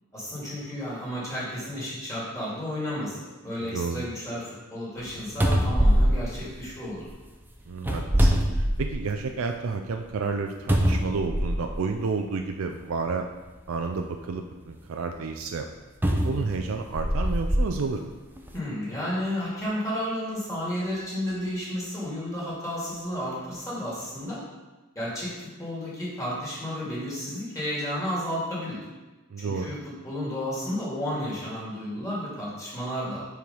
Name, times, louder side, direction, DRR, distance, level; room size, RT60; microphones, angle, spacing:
voice 1, 0.1-7.1 18.5-24.4 25.0-25.3 25.6-28.8 29.4-29.8 30.0-33.3, equal, 15° left, -8 dB, 2.2 m, -32 dB
voice 2, 3.6-4.0 7.7-13.3 13.7-15.7 16.2-18.1 29.3-29.7, right 4 dB, 75° right, 5 dB, 0.4 m, -31 dB
sound 1, 5.0-5.1 5.4-7.1 7.8-9.2 9.6-9.7 10.7-11.8 12.7-12.9 16.0-17.7 18.4-18.5, equal, 10° right, 0.5 m, -23 dB
4.8 x 4.5 x 5.3 m, 1.2 s
head